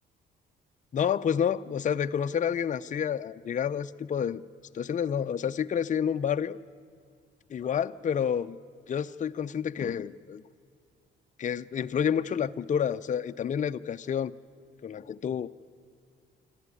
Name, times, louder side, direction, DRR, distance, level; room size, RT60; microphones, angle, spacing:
voice 1, 0.9-4.4 4.7-6.6 7.5-8.6 8.9-10.4 11.4-14.3 14.8-15.5, left 8 dB, 40° left, 10 dB, 0.6 m, -29 dB
26.0 x 13.5 x 9.8 m, 2.3 s
cardioid pair, 90°, 20 cm